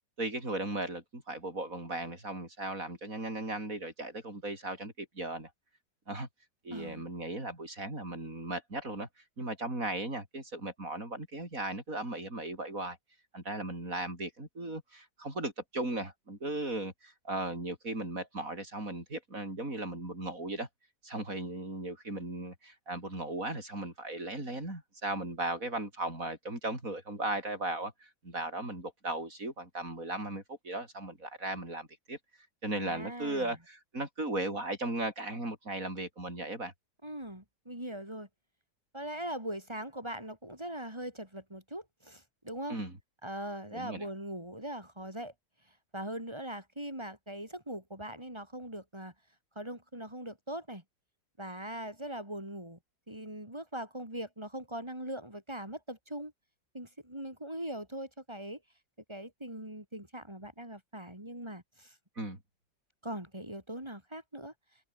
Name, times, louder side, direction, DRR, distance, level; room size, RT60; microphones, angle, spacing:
voice 1, 0.2-5.5 6.1-6.3 6.6-9.1 9.4-13.0 13.3-20.7 21.0-32.2 32.6-36.7 42.7-42.9 43.7-44.1 62.2-62.4, right 2 dB, 45° right, 8.2 m, -37 dB
voice 2, 6.7-7.0 32.7-33.6 37.0-38.3 38.9-42.8 43.2-45.3 45.9-49.1 49.6-50.8 51.4-52.8 53.1-56.3 56.7-58.6 59.1-62.0 63.0-64.5, right 1 dB, 15° right, 5.6 m, -41 dB
omnidirectional pair, 2.0 m